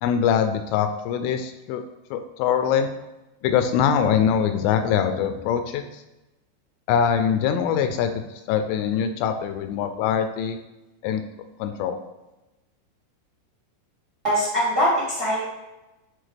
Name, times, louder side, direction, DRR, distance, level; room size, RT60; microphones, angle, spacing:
voice 1, 0.0-1.8 2.1-2.9 3.4-6.0 6.9-10.6 11.0-11.2 11.6-12.0, left 8 dB, 85° left, 8 dB, 2.9 m, -23 dB
voice 2, 14.2-15.4, equal, 50° right, -7 dB, 1.1 m, -22 dB
10.0 x 4.8 x 3.4 m, 1.0 s
omnidirectional pair, 5.7 m